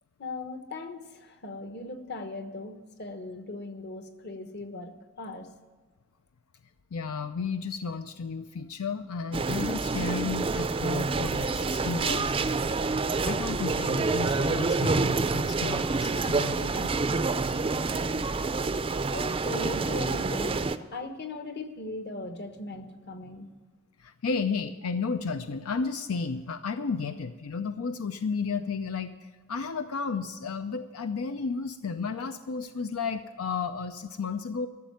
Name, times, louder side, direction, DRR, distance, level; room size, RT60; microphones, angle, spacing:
voice 1, 0.2-5.5 19.1-23.5, left 2 dB, 50° left, 7 dB, 1.2 m, -39 dB
voice 2, 6.9-16.9 24.0-29.1 29.5-34.7, left 5 dB, 85° left, 9 dB, 0.5 m, -33 dB
sound 1, 9.3-20.8, right 3 dB, 25° right, 0.4 m, -27 dB
13.0 x 7.3 x 9.3 m, 1.4 s
head